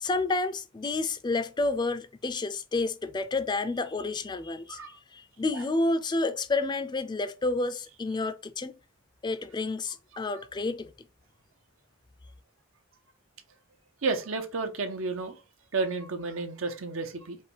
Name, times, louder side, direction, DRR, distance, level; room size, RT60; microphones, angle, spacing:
voice 1, 0.0-4.8 5.1-8.7 9.2-10.9, left 3 dB, 20° left, 0.3 m, -30 dB
voice 2, 14.0-15.4 15.7-17.4, right 3 dB, 85° right, 0.9 m, -31 dB
5.0 x 2.3 x 4.1 m
head